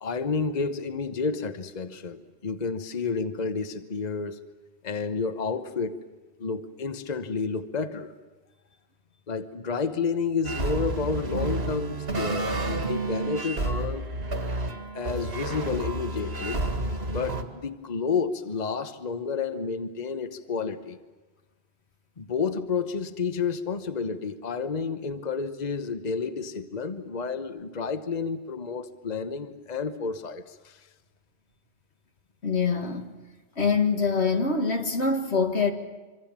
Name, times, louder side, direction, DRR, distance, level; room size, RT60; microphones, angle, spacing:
voice 1, 0.0-4.4 4.8-6.0 6.4-8.1 9.3-14.1 14.9-16.7 17.1-21.0 22.2-30.9, left 5 dB, 40° left, 1.1 m, -30 dB
sound 1, 10.4-17.4, right 2 dB, 70° right, 2.2 m, -30 dB
voice 2, 32.4-33.1 33.6-35.7, left 4 dB, 90° left, 2.3 m, -24 dB
25.5 x 25.5 x 7.4 m
omnidirectional pair, 1.1 m